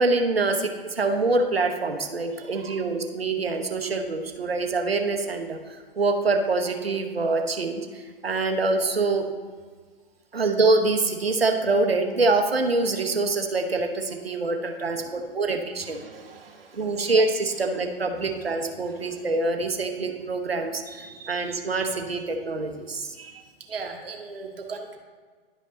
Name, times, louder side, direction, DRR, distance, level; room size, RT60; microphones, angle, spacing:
voice 1, 0.0-9.2 10.3-16.0 16.7-23.2, right 3 dB, 90° right, 5 dB, 1.0 m, -25 dB
voice 2, 2.4-2.8 10.3-10.4 15.8-17.1 18.8-19.3 20.9-21.5 22.0-22.1 23.1-23.4 23.7-25.0, right 4 dB, 75° right, 2 dB, 1.5 m, -40 dB
11.0 x 5.3 x 3.8 m, 1.5 s
figure-of-eight pair, 110°, 29 cm